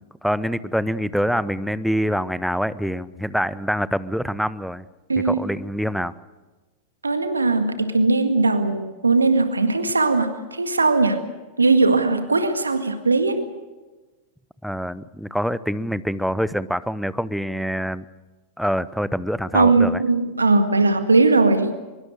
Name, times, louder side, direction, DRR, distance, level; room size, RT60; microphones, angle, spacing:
voice 1, 0.0-4.9 5.2-6.1 14.6-18.0 18.6-20.0, equal, ahead, 17 dB, 0.8 m, -25 dB
voice 2, 5.1-5.5 7.0-11.2 11.6-13.4 19.5-21.7, right 3 dB, 80° right, 8 dB, 1.8 m, -19 dB
24.0 x 22.5 x 6.5 m, 1.2 s
figure-of-eight pair, 90°, 0 cm